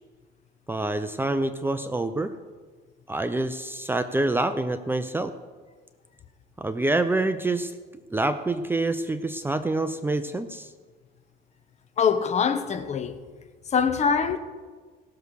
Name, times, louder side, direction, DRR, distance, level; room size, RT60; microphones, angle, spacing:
voice 1, 0.7-2.3 3.1-5.3 6.6-7.7 8.1-10.7, right 2 dB, 10° right, 0.6 m, -26 dB
voice 2, 12.0-13.2 13.7-14.4, left 6 dB, 40° left, 1.1 m, -23 dB
18.0 x 6.8 x 6.4 m
cardioid pair, 120°, 18 cm